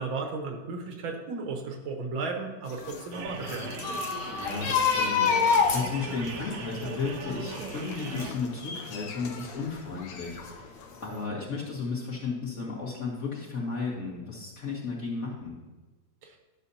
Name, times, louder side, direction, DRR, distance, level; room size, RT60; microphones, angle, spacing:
voice 1, 0.0-3.7 16.2-16.4, right 4 dB, 90° right, 2 dB, 1.9 m, -34 dB
sound 1, 2.7-9.6 10.0-10.8 11.1-11.2, left 5 dB, 70° left, 1.4 m, -29 dB
sound 2, 3.1-8.3, right 4 dB, 65° right, 1.0 m, -39 dB
voice 2, 4.3-10.7 11.0-15.6, left 4 dB, 40° left, -5 dB, 2.1 m, -34 dB
12.0 x 6.3 x 2.8 m, 1.2 s
omnidirectional pair, 2.1 m